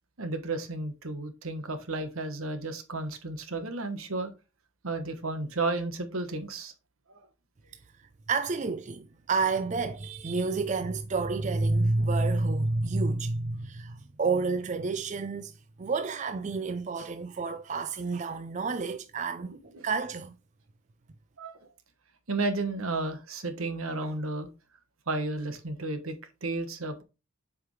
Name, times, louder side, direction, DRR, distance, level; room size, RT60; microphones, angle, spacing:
voice 1, 0.2-4.3 4.8-6.7 7.1-7.2 19.7-19.8 21.4-21.7 22.3-24.5 25.1-26.1 26.4-27.0, right 2 dB, 80° right, 1.3 m, -33 dB
voice 2, 8.3-15.5 15.8-19.5 19.8-20.4, right 3 dB, 35° right, 0.4 m, -29 dB
7.8 x 5.0 x 3.2 m
head